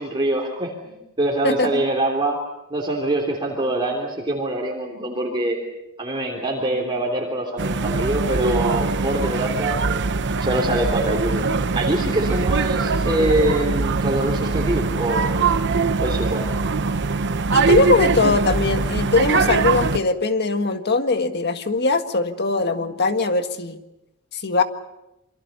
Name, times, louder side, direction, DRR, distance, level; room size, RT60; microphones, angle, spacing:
voice 1, 0.0-2.4 2.7-5.6 6.0-10.0 10.4-11.5 11.7-15.5 16.0-16.5, right 1 dB, 25° right, -2 dB, 3.3 m, -24 dB
sound 1, 7.6-20.0, right 4 dB, 55° right, 0.9 m, -22 dB
voice 2, 17.5-23.8 24.3-24.6, left 3 dB, 50° left, 7 dB, 1.7 m, -21 dB
27.5 x 24.5 x 5.6 m, 0.91 s
head